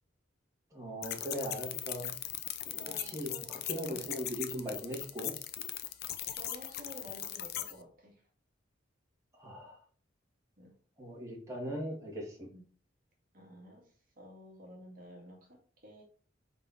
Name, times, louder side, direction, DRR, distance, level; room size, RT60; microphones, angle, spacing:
voice 1, 0.7-2.1 3.0-5.3 9.3-9.8 11.0-12.5, equal, 15° right, 2.3 m, -39 dB
sound 1, 1.0-7.7, left 11 dB, 55° left, 0.7 m, -39 dB
voice 2, 2.7-4.1 6.3-8.2 10.6-10.7 12.5-12.6 13.3-13.9 14.2-16.0, equal, 45° right, 2.0 m, -51 dB
5.4 x 4.7 x 5.7 m
head